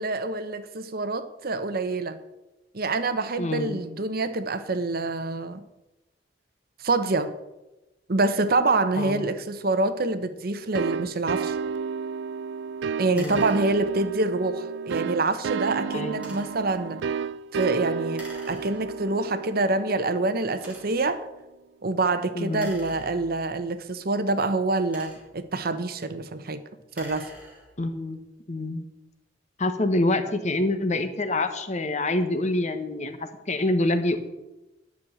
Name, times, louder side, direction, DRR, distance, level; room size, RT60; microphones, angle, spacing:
voice 1, 0.0-2.2 2.7-5.6 6.8-7.3 8.1-11.6 13.0-17.0 17.5-21.2 21.8-26.6 27.0-27.3, right 3 dB, 55° right, 11 dB, 0.9 m, -26 dB
voice 2, 3.4-3.8 9.0-9.3 13.1-13.4 15.9-16.4 22.3-22.7 27.8-28.2 28.5-28.8 29.6-33.2 33.5-34.2, left 2 dB, 40° left, 8 dB, 1.1 m, -26 dB
sound 1, 10.7-21.2, right 6 dB, 80° right, 0.4 m, -32 dB
sound 2, 11.3-11.6 13.1-14.2 16.1-16.7 18.1-19.1 19.8-19.9 20.5-21.2 22.5-23.6 24.6-25.5 26.8-27.9, right 1 dB, 10° right, 3.2 m, -46 dB
10.5 x 6.4 x 8.7 m, 1.0 s
head